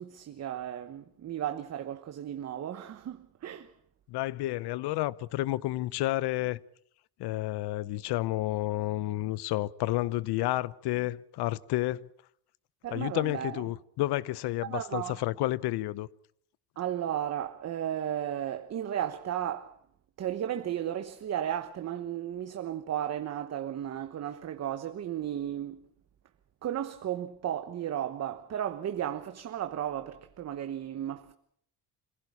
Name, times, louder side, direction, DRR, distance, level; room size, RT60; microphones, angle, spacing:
voice 1, 0.0-3.7 12.8-13.6 14.6-15.2 16.8-19.8 20.2-25.9 26.6-31.3, right 10 dB, 40° right, 1.1 m, -34 dB
voice 2, 4.1-6.6 7.2-12.1 12.9-16.1, left 16 dB, 70° left, 0.8 m, -30 dB
26.5 x 16.0 x 8.5 m
cardioid pair, 155°, 41 cm